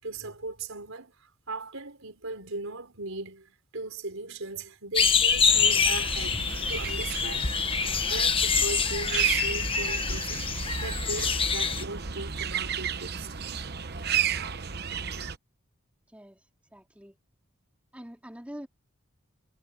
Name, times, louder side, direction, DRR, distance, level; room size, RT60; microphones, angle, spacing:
voice 1, 0.0-7.5 8.1-10.5 10.8-13.4, right 3 dB, 75° right, 4.3 m, -38 dB
sound 1, 5.0-11.8, left 6 dB, 25° left, 1.1 m, -26 dB
sound 2, 5.5-15.4, right 7 dB, 50° right, 1.0 m, -33 dB
voice 2, 16.1-16.4 16.7-17.2 17.9-18.7, equal, 5° right, 2.5 m, -44 dB
head